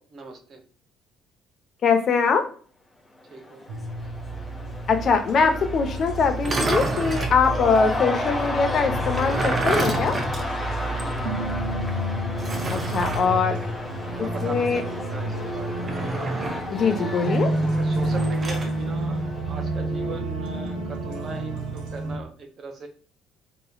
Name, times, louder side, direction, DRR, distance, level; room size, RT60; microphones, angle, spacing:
voice 1, 0.1-0.6 3.3-3.6 10.8-11.5 12.9-13.7 14.0-15.9 16.8-22.9, right 3 dB, 50° right, 4 dB, 1.0 m, -39 dB
voice 2, 1.8-2.5 4.9-10.2 12.7-13.6 14.2-14.8 16.7-17.5, left 5 dB, 50° left, 7 dB, 0.7 m, -22 dB
Cheering / Crowd, 3.2-20.1, left 2 dB, 15° left, 0.9 m, -34 dB
sound 1, 3.7-22.2, right 1 dB, 75° right, 0.8 m, -30 dB
sound 2, 6.4-7.4 8.9-11.2 11.5-11.6 12.4-13.3 15.8-16.8 18.1-18.7, right 3 dB, 35° right, 0.6 m, -29 dB
3.6 x 3.2 x 2.2 m, 0.43 s
supercardioid pair, 70°, 0 cm